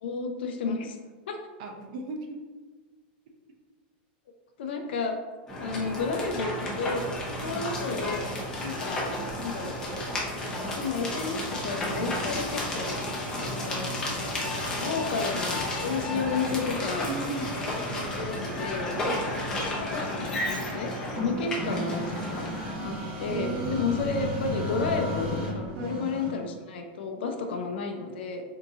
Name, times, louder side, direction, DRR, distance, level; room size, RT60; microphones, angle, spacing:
voice 1, 0.0-1.0 1.3-1.4 4.6-5.2 5.6-7.1 7.4-8.3 8.6-9.0 9.4-9.8 10.8-12.9 13.4-13.9 14.8-17.1 17.9-18.9 19.8-22.5 22.8-28.4, left 4 dB, 85° left, 4 dB, 0.5 m, -32 dB
voice 2, 1.6-2.4 7.4-7.6 17.1-17.5 19.1-19.3 21.4-21.6 23.3-23.9 25.8-26.0, right 3 dB, 50° right, 2 dB, 0.5 m, -35 dB
sound 1, 5.5-22.7, left 1 dB, 10° left, 0.6 m, -32 dB
sound 2, 11.5-26.5, left 1 dB, 30° right, 1.0 m, -37 dB
3.6 x 2.7 x 2.7 m, 1.3 s
supercardioid pair, 175°, 5 cm